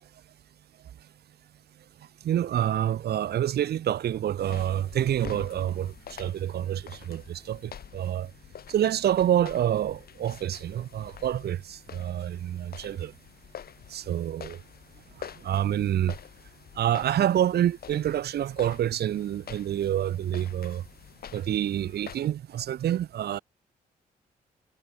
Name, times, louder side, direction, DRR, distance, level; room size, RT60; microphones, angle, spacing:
voice 1, 2.2-8.3 8.7-13.1 13.9-14.6 15.2-16.1 16.7-20.8 21.3-23.4, right 11 dB, 80° right, 1.7 m, -27 dB
sound 1, 4.4-22.2, left 9 dB, 65° left, 3.4 m, -47 dB
cardioid pair, 85°, 17 cm